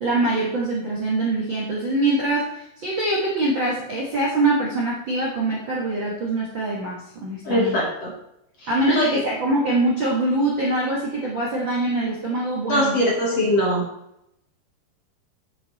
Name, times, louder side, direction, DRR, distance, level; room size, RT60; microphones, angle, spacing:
voice 1, 0.0-7.8 8.7-13.0, right 2 dB, 50° right, -4 dB, 1.5 m, -24 dB
voice 2, 7.4-8.1 8.6-9.2 12.7-13.8, equal, 45° left, -3 dB, 2.5 m, -22 dB
8.6 x 8.3 x 4.2 m, 0.80 s
omnidirectional pair, 4.6 m